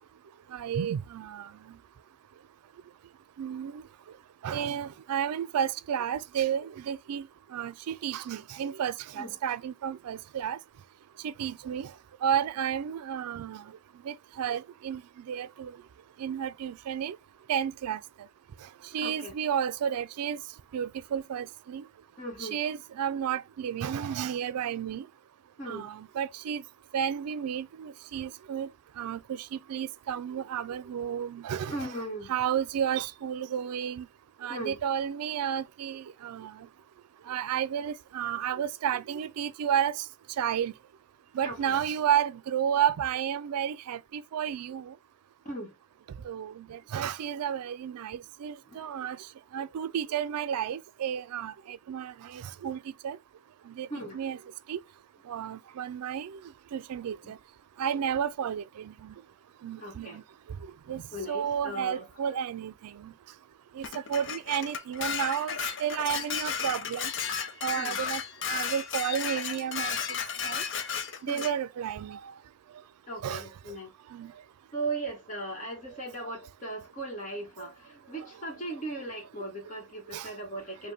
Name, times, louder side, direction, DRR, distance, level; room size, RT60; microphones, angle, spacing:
voice 1, 0.5-1.5 3.4-3.8 4.4-7.3 7.5-10.6 11.2-11.9 12.2-13.6 14.0-15.0 15.3-15.7 16.2-17.2 17.5-18.0 18.9-20.4 20.7-21.8 22.4-25.1 25.7-26.6 26.9-28.7 29.0-32.0 32.3-34.1 34.4-36.6 37.3-40.0 40.4-40.7 41.3-44.9 46.2-49.2 49.5-53.2 53.7-53.9 54.1-54.4 54.7-54.8 55.3-56.4 56.7-57.4 57.8-59.1 59.6-60.2 60.9-63.1 63.7-67.1 67.6-68.2 68.5-70.0 70.4-70.6 71.2-72.2 73.2-73.4 74.1-74.3 80.1-80.3, right 9 dB, 85° right, 0.4 m, -32 dB
voice 2, 19.0-19.3 22.2-22.6 25.6-25.9 31.7-32.3 34.5-34.8 41.4-41.8 45.4-45.7 48.7-49.1 53.9-54.2 57.2-57.3 59.8-60.2 61.1-62.1 67.7-68.0 71.3-71.5 73.1-73.9 74.7-80.9, right 2 dB, 35° left, 1.3 m, -38 dB
Dishes pots and pans, 63.8-71.5, left 7 dB, 55° left, 0.6 m, -33 dB
5.0 x 2.2 x 3.3 m
head